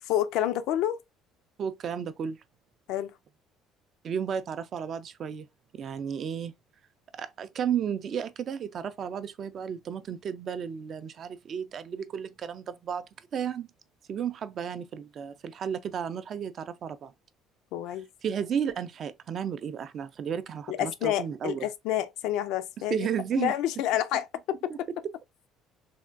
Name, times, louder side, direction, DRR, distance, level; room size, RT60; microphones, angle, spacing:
voice 1, 0.0-1.0 2.9-3.1 17.7-18.1 20.7-23.1 23.4-24.3 24.6-24.9, left 12 dB, 75° left, 0.3 m, -29 dB
voice 2, 1.6-2.4 4.0-5.5 5.7-6.5 7.1-13.0 13.3-13.7 14.1-17.1 18.2-21.7 22.9-23.5 24.7-24.8, right 8 dB, 45° right, 0.3 m, -33 dB
3.4 x 2.2 x 2.4 m
cardioid pair, 125°, 0 cm